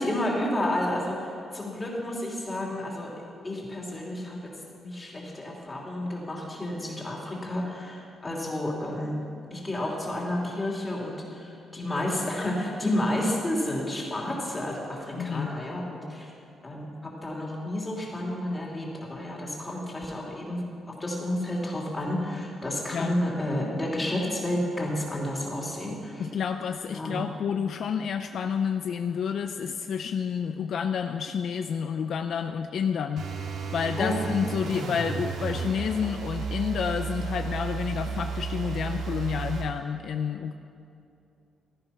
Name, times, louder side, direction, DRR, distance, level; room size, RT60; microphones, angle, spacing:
voice 1, 0.0-4.4 4.8-9.2 9.5-16.3 16.6-16.9 17.2-26.3 26.9-27.3 34.0-34.2, left 1 dB, 15° left, -2 dB, 3.1 m, -31 dB
voice 2, 15.1-15.5 22.9-23.2 26.2-33.3 33.7-40.5, left 7 dB, 60° left, 7 dB, 0.5 m, -29 dB
sound 1, 33.2-39.7, right 5 dB, 75° right, 1.8 m, -33 dB
15.5 x 13.0 x 5.8 m, 2.6 s
cardioid pair, 150°, 0 cm